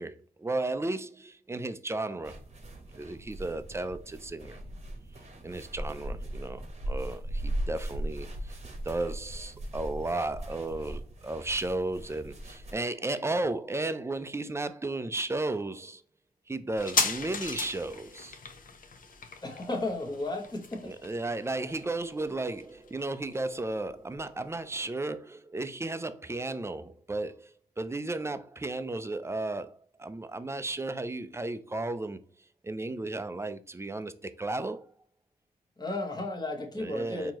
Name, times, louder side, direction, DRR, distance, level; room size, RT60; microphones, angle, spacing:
voice 1, 0.0-2.4 2.9-4.6 5.4-8.6 8.8-16.0 16.5-18.4 20.8-32.2 32.6-34.8 36.8-37.3, right 2 dB, 15° right, 0.4 m, -34 dB
sound 1, 2.2-12.7, right 1 dB, 40° right, 0.9 m, -38 dB
sound 2, 16.8-23.9 24.1-24.2, left 4 dB, 55° left, 0.7 m, -36 dB
voice 2, 19.4-20.9 35.8-37.3, left 2 dB, 25° left, 1.2 m, -34 dB
4.4 x 2.8 x 2.9 m
cardioid pair, 65°, 17 cm